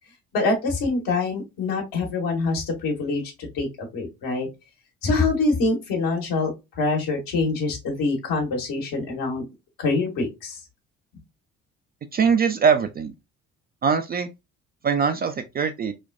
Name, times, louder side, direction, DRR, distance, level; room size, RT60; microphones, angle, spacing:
voice 1, 0.3-3.2 3.5-3.7 3.9-4.5 5.0-9.4 9.8-10.6, left 3 dB, 65° left, 1.4 m, -25 dB
voice 2, 12.1-13.1 13.8-14.3 14.8-15.9, right 6 dB, 25° right, 0.3 m, -22 dB
4.2 x 2.2 x 2.4 m
hypercardioid pair, 50°, 38 cm